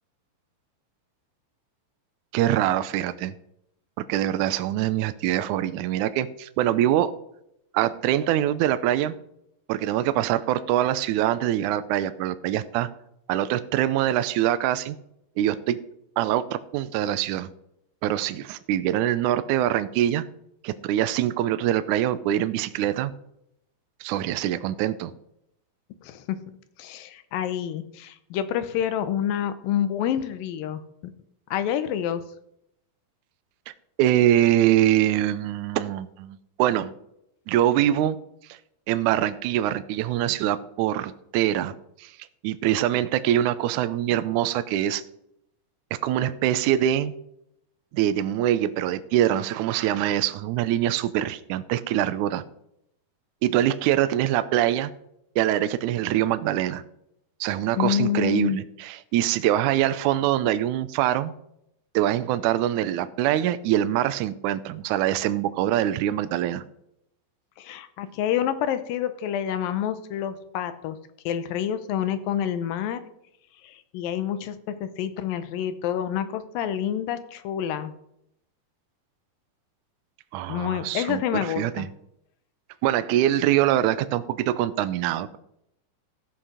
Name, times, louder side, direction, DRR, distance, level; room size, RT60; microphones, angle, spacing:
voice 1, 2.3-3.4 4.1-7.1 7.7-9.1 9.7-12.9 13.3-15.0 15.4-15.8 16.2-17.5 18.0-20.2 20.6-23.1 24.0-25.1 34.0-36.9 37.5-38.2 38.5-38.6 38.9-41.7 42.0-42.1 42.4-45.0 46.0-47.1 47.9-52.4 53.4-54.9 55.4-56.8 57.4-61.3 61.9-66.6 80.3-81.2 81.6-81.9 82.8-85.4, right 12 dB, 80° right, 13 dB, 1.8 m, -24 dB
voice 2, 26.0-26.4 26.8-30.8 31.5-32.2 57.8-58.6 67.6-71.0 71.3-73.0 73.6-77.9 80.5-81.9, left 10 dB, 80° left, 12 dB, 2.5 m, -28 dB
15.5 x 5.6 x 5.0 m, 0.77 s
omnidirectional pair, 4.1 m